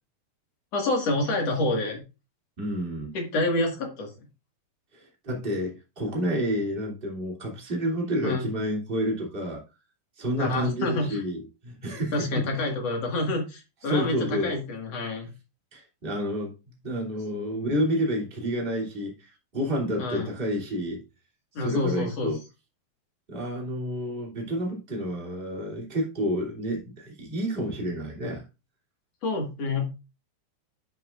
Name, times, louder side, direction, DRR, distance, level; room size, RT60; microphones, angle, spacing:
voice 1, 0.7-2.0 3.1-4.1 8.2-8.5 10.4-11.2 12.1-15.3 20.0-20.3 21.6-22.3 29.2-29.9, left 2 dB, 50° left, 2.1 m, -28 dB
voice 2, 2.6-3.1 4.9-9.6 10.2-12.5 13.8-14.5 15.7-16.6 16.8-21.0 21.6-22.4 23.3-28.4, equal, 15° right, 1.8 m, -29 dB
9.9 x 8.7 x 2.5 m
omnidirectional pair, 5.1 m